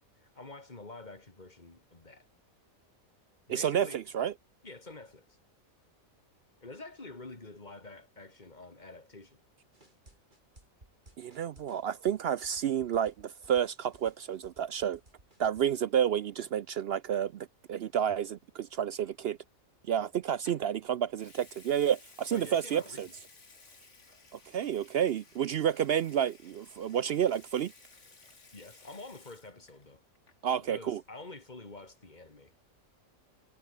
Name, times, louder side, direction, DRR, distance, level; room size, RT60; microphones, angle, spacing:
voice 1, 0.2-2.3 3.5-4.0 4.6-5.4 6.6-9.4 22.3-23.1 28.5-30.0 30.6-32.5, left 2 dB, 30° left, 2.9 m, -48 dB
voice 2, 3.5-4.3 11.2-15.0 15.4-19.4 19.9-23.1 24.5-27.7 30.4-31.0, right 9 dB, 65° right, 0.6 m, -30 dB
sound 1, 9.7-15.8, right 1 dB, 35° right, 4.8 m, -60 dB
Water tap faucet / Sink (filling or washing) / Liquid, 20.4-20.7 21.1-29.9 30.1-30.5, left 3 dB, 55° left, 3.1 m, -57 dB
omnidirectional pair, 1.5 m